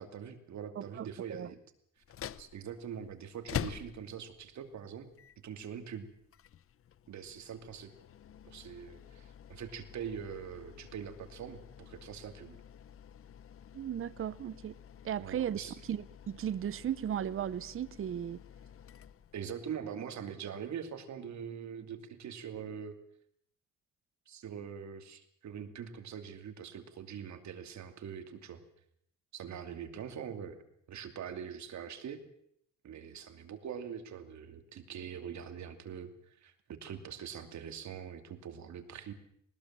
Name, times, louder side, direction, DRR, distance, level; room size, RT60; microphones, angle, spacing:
voice 1, 0.0-1.6 2.4-5.1 5.4-6.1 7.1-7.9 8.4-12.6 15.2-15.8 19.3-22.9 24.3-28.6 29.3-30.6 30.9-32.2 32.8-39.1, right 8 dB, 65° right, 2.7 m, -43 dB
voice 2, 0.7-1.5 13.7-14.8 15.0-18.4, right 10 dB, 45° right, 0.8 m, -36 dB
sound 1, 2.0-19.8, left 9 dB, 45° left, 0.8 m, -48 dB
20.5 x 19.5 x 7.5 m
cardioid pair, 90°, 30 cm